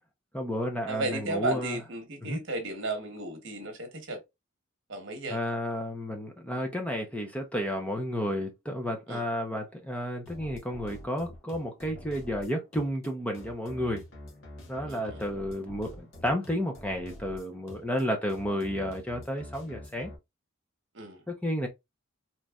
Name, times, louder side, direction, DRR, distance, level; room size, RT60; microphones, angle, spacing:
voice 1, 0.3-1.8 2.2-2.4 5.3-14.0 14.7-20.1 21.3-21.7, equal, 5° left, 0.6 m, -32 dB
voice 2, 0.9-4.2 4.9-5.4 6.5-6.6 9.1-9.2 14.9-15.2 20.9-21.2, right 2 dB, 60° right, 1.1 m, -34 dB
sound 1, 10.3-20.1, left 1 dB, 65° left, 1.2 m, -47 dB
3.9 x 3.1 x 2.3 m
head